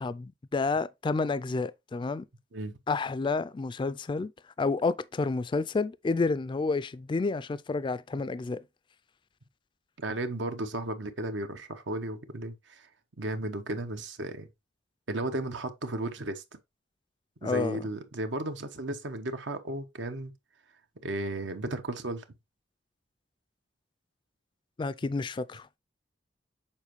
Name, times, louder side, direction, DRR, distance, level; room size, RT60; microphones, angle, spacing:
voice 1, 0.0-2.3 2.9-4.3 4.6-8.6 17.4-17.8 24.8-25.7, left 3 dB, 25° left, 0.3 m, -30 dB
voice 2, 10.0-12.9 13.2-14.5 15.1-16.4 17.4-20.3 21.0-22.2, right 2 dB, 80° right, 0.9 m, -34 dB
7.2 x 4.4 x 3.1 m
head